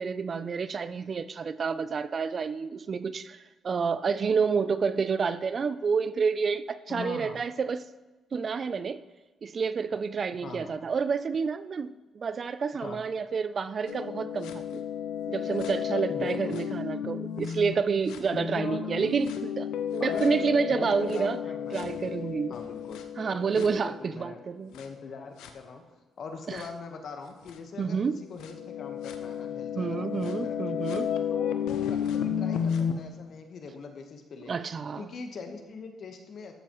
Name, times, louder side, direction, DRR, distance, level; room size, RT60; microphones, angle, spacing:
voice 1, 0.0-7.8 8.3-9.0 9.4-14.8 15.3-19.7 19.9-21.4 21.7-22.5 23.2-24.7 26.5-26.6 27.8-28.2 29.8-31.1 34.5-35.1, right 5 dB, 45° right, 0.3 m, -29 dB
voice 2, 6.9-7.4 10.4-10.7 12.8-13.0 16.1-16.6 18.3-18.9 20.0-21.9 22.5-23.0 23.5-24.4 24.7-25.8 26.2-30.9 31.3-34.6 35.0-36.6, left 4 dB, 60° left, 1.1 m, -42 dB
sound 1, 13.9-17.7 18.1-24.2 24.7-24.8 25.4-25.5 26.6-26.7 27.5-27.6 28.4-32.9, left 8 dB, 90° left, 0.6 m, -32 dB
13.0 x 6.9 x 3.0 m
cardioid pair, 90°, 0 cm